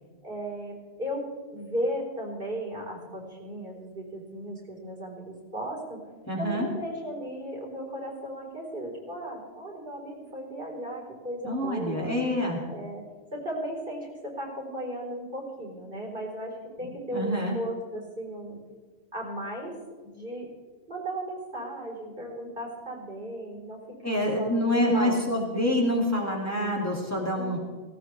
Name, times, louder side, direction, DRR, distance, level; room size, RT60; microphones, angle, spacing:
voice 1, 0.2-6.0 6.4-12.2 12.7-13.0 13.3-18.6 19.1-19.8 20.0-20.5 20.9-25.2 27.3-27.6, equal, 50° right, -2 dB, 4.5 m, -36 dB
voice 2, 6.3-6.6 11.4-12.7 16.8-17.6 24.0-27.6, left 1 dB, 15° left, -2 dB, 2.5 m, -27 dB
18.0 x 17.5 x 3.4 m, 1.4 s
omnidirectional pair, 1.2 m